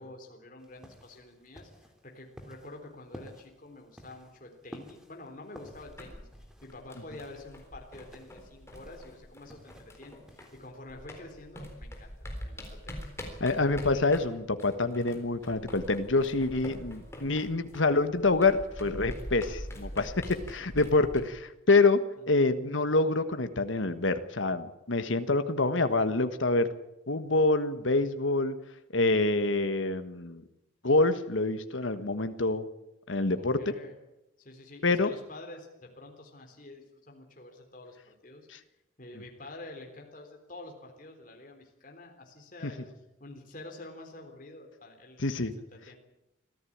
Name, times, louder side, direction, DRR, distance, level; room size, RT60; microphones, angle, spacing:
voice 1, 0.0-6.3 6.6-12.1 12.4-13.0 20.2-20.3 22.2-22.3 33.4-33.9 34.4-38.5 39.0-42.9 43.2-46.0, left 2 dB, 40° left, 2 dB, 3.7 m, -48 dB
sound 1, 0.6-10.7, equal, 5° right, 2.7 m, -53 dB
sound 2, 5.7-10.6 10.9-21.2, equal, 15° left, 4.0 m, -44 dB
voice 2, 13.4-20.1 20.5-22.0 22.3-26.7 27.1-28.5 28.9-30.4 30.8-32.7 33.1-33.6 34.8-35.1 45.2-45.5, left 3 dB, 75° left, 9 dB, 1.5 m, -26 dB
25.5 x 15.0 x 8.7 m, 0.91 s
head